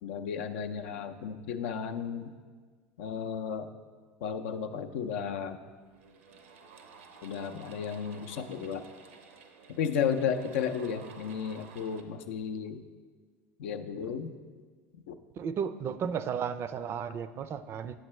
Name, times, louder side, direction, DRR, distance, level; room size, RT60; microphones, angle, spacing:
voice 1, 0.0-2.3 3.0-3.7 4.2-5.6 7.2-8.8 9.7-12.8 13.6-14.3 15.1-15.2, left 7 dB, 75° left, 7 dB, 0.5 m, -33 dB
sound 1, 5.8-12.0, right 5 dB, 85° right, 0.6 m, -53 dB
voice 2, 15.3-18.0, right 7 dB, 40° right, 12 dB, 0.4 m, -34 dB
8.0 x 7.4 x 3.1 m, 1.5 s
hypercardioid pair, 90°, 7 cm